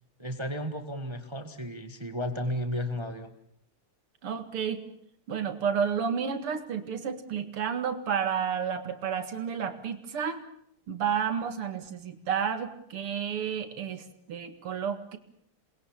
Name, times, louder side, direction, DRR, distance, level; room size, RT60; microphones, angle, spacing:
voice 1, 0.2-3.3, equal, 15° right, 7 dB, 1.6 m, -33 dB
voice 2, 4.2-4.8 5.3-10.4 10.9-15.2, right 7 dB, 80° right, 8 dB, 2.8 m, -31 dB
28.5 x 21.5 x 7.4 m, 0.72 s
omnidirectional pair, 2.4 m